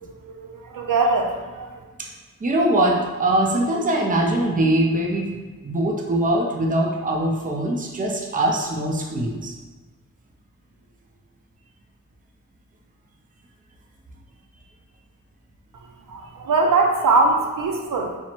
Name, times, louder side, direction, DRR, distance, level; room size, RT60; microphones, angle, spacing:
voice 1, 0.0-1.7 16.1-18.1, right 3 dB, 75° right, 2 dB, 0.6 m, -21 dB
voice 2, 2.4-5.3 5.6-9.5, right 1 dB, 25° right, -1 dB, 0.5 m, -22 dB
4.3 x 2.0 x 4.3 m, 1.3 s
wide cardioid pair, 120°, 33 cm